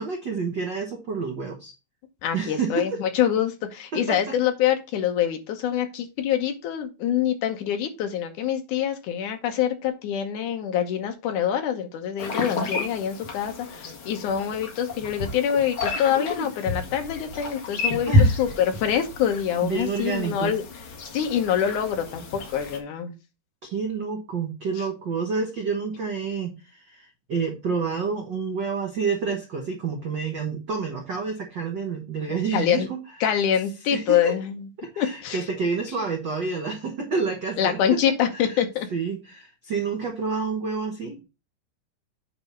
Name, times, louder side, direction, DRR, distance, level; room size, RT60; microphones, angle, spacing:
voice 1, 0.0-1.7 2.3-3.0 3.9-4.4 18.1-18.4 19.6-20.5 23.7-33.0 33.9-34.4 34.8-38.0 38.3-38.6 38.9-41.2, right 5 dB, 80° right, 2 dB, 1.0 m, -29 dB
voice 2, 2.2-18.5 18.7-20.6 21.1-23.1 24.8-24.9 32.5-32.9 33.2-34.6 35.0-35.4 37.6-38.9, left 9 dB, 70° left, 6 dB, 2.3 m, -25 dB
sound 1, 12.2-22.8, left 2 dB, 45° left, 1.9 m, -29 dB
8.8 x 3.4 x 5.4 m, 0.27 s
omnidirectional pair, 4.0 m